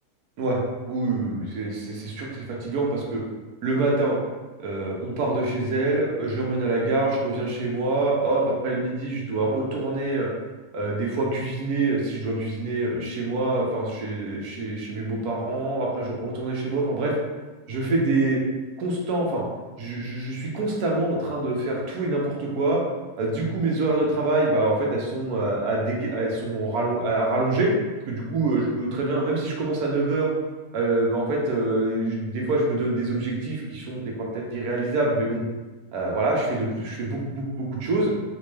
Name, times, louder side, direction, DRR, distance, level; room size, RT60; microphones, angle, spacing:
voice 1, 0.9-3.2 3.6-4.2 4.6-10.3 10.7-17.1 17.7-18.4 18.8-19.4 19.8-22.8 23.2-27.7 28.1-30.3 30.7-35.4 35.9-38.1, right 2 dB, 80° right, -2 dB, 1.2 m, -25 dB
4.1 x 2.2 x 3.1 m, 1.2 s
omnidirectional pair, 1.6 m